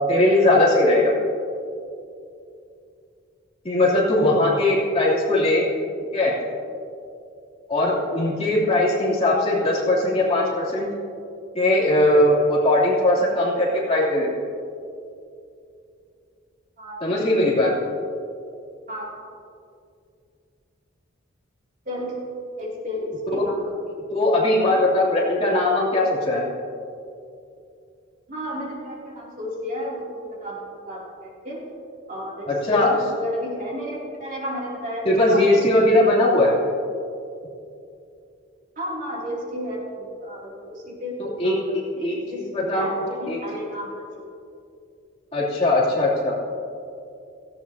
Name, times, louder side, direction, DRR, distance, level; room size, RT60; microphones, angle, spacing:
voice 1, 0.1-1.2 3.6-5.6 6.1-6.3 7.7-10.9 11.5-14.3 17.0-17.7 24.1-26.5 32.5-32.9 35.0-36.5 41.4-41.5 42.0-42.9 43.3-43.4 45.3-46.3, left 1 dB, 30° left, -6 dB, 2.9 m, -19 dB
voice 2, 18.9-19.3 21.8-22.2 22.6-24.0 24.6-24.8 28.3-31.7 32.1-35.5 36.0-36.2 38.8-42.5 42.7-44.1, equal, 40° right, -5 dB, 2.9 m, -33 dB
17.5 x 16.0 x 2.8 m, 2.5 s
head